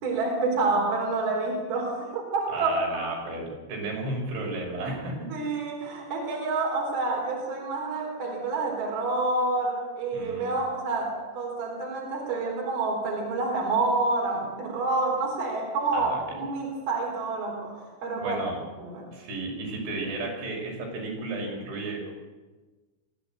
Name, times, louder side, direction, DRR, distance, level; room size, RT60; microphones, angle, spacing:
voice 1, 0.0-3.2 5.3-18.4 18.8-19.1, right 3 dB, 55° right, 0 dB, 5.8 m, -28 dB
voice 2, 2.5-5.3 10.1-10.5 15.9-16.2 18.2-18.6 19.1-22.1, right 2 dB, 80° right, -1 dB, 7.9 m, -33 dB
22.5 x 16.0 x 9.1 m, 1.3 s
omnidirectional pair, 5.4 m